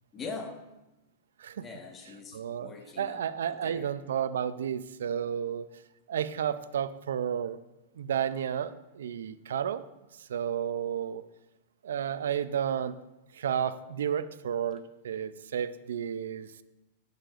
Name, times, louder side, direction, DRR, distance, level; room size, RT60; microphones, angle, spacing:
voice 1, 0.1-0.6 1.6-3.9, left 4 dB, 25° left, 3 dB, 1.4 m, -42 dB
voice 2, 2.3-2.7 3.0-5.7 6.1-7.6 8.0-9.8 10.3-11.2 11.8-13.0 13.3-16.5, right 8 dB, 85° right, 14 dB, 0.5 m, -32 dB
17.5 x 6.6 x 2.6 m, 0.98 s
hypercardioid pair, 130°, 0 cm